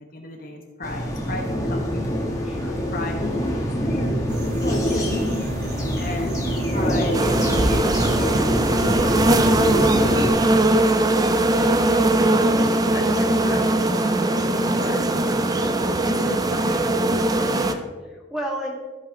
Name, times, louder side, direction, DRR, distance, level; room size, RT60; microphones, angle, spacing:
voice 1, 0.0-2.1 2.9-7.2 7.5-12.1 12.9-15.0 16.0-17.7, left 2 dB, 45° left, 1 dB, 1.0 m, -36 dB
sound 1, 0.8-10.3, equal, 15° left, 1.5 m, -25 dB
voice 2, 2.4-2.8 6.4-6.7 17.6-18.7, right 1 dB, 5° right, -3 dB, 2.1 m, -33 dB
sound 2, 4.3-10.3, right 1 dB, 55° right, 0.8 m, -31 dB
sound 3, 7.1-17.7, right 1 dB, 20° right, 0.5 m, -20 dB
14.0 x 5.6 x 3.8 m, 1.3 s
head